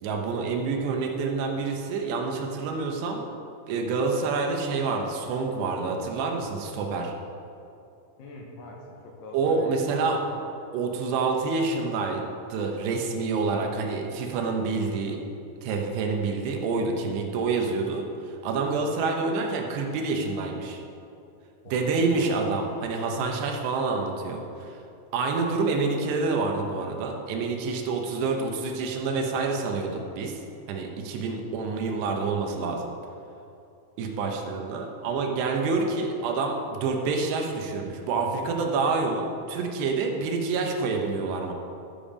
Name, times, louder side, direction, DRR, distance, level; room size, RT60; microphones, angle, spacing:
voice 1, 0.0-3.2 3.7-7.1 9.3-10.2 10.7-12.2 12.5-15.2 15.6-20.8 21.7-24.8 25.1-30.4 30.7-32.9 34.0-41.5, right 4 dB, 85° right, 2 dB, 3.2 m, -27 dB
voice 2, 8.2-10.4 21.6-22.4 31.4-31.7 35.9-36.2, left 2 dB, 70° left, -1 dB, 2.5 m, -44 dB
12.5 x 7.3 x 5.0 m, 2.6 s
omnidirectional pair, 4.7 m